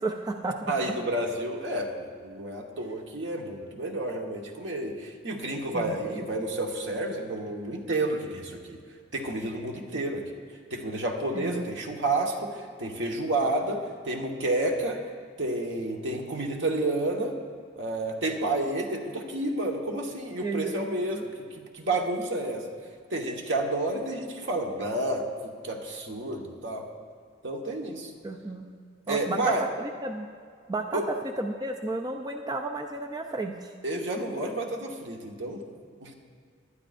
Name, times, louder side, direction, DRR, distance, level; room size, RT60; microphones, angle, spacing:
voice 1, 0.0-0.7 5.7-6.0 11.3-11.6 20.4-20.9 21.1-21.2 28.2-28.7 29.1-30.3 30.7-33.7, right 2 dB, 20° right, 3 dB, 0.5 m, -32 dB
voice 2, 0.7-8.8 9.1-10.4 10.7-15.0 15.4-17.3 17.8-22.6 23.1-26.9 27.4-28.1 29.1-29.6 30.9-31.0 33.8-35.7 36.0-36.1, right 2 dB, 70° right, 1 dB, 1.3 m, -30 dB
19.5 x 11.5 x 2.6 m, 2.2 s
head